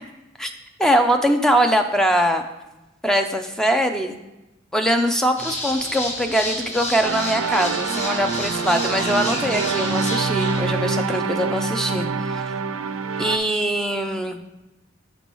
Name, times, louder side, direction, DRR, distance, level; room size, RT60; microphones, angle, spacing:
voice 1, 0.8-2.4 3.0-4.2 4.7-12.4 13.2-14.4, equal, 5° left, 6 dB, 0.3 m, -22 dB
sound 1, 5.4-10.6, left 1 dB, 35° left, 1.2 m, -30 dB
sound 2, 7.0-13.4, right 4 dB, 75° right, 0.4 m, -25 dB
6.9 x 6.0 x 3.0 m, 1.0 s
head